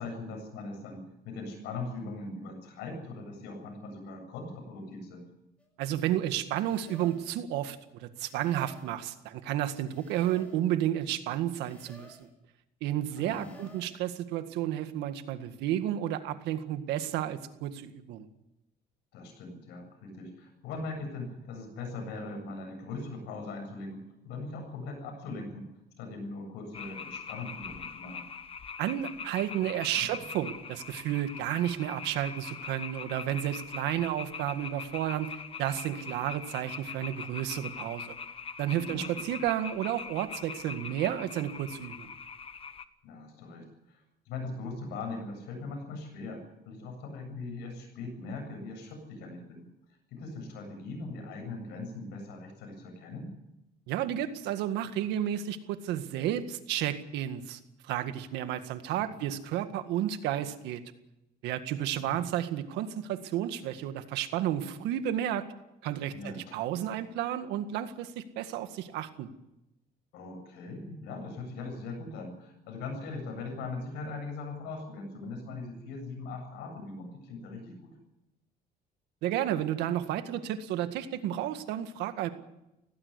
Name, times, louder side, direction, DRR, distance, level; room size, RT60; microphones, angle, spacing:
voice 1, 0.0-5.3 13.1-13.7 19.1-25.7 26.0-28.3 29.5-29.6 30.1-30.2 38.8-39.4 43.0-53.3 59.0-59.3 62.0-62.2 66.1-66.6 70.1-77.9, left 3 dB, 85° left, 4 dB, 7.8 m, -40 dB
sound 1, 5.6-5.7 6.5-7.3 8.2-9.0 9.8-10.7 11.5-12.3 13.2-14.0, left 1 dB, 5° left, 7.4 m, -55 dB
voice 2, 5.8-12.3 12.8-18.3 28.8-38.2 38.6-42.1 53.9-60.8 61.4-65.5 65.8-69.3 79.2-82.3, right 11 dB, 90° right, 9 dB, 1.9 m, -32 dB
sound 2, 26.7-42.8, left 6 dB, 35° left, 1.1 m, -42 dB
17.5 x 16.5 x 9.9 m, 0.91 s
cardioid pair, 110°, 17 cm